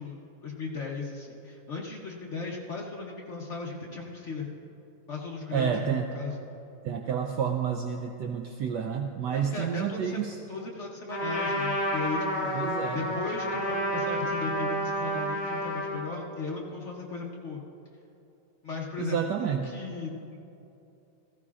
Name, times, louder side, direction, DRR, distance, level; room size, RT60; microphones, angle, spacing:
voice 1, 0.0-4.6 5.1-6.3 9.3-12.5 12.9-17.6 18.6-20.4, left 4 dB, 60° left, -1 dB, 0.7 m, -37 dB
voice 2, 5.5-6.1 6.8-10.4 12.5-13.2 19.0-19.7, right 7 dB, 80° right, 4 dB, 0.9 m, -30 dB
Trumpet, 11.1-16.0, equal, 25° left, 3.2 m, -30 dB
16.5 x 15.0 x 2.4 m, 2.8 s
omnidirectional pair, 2.4 m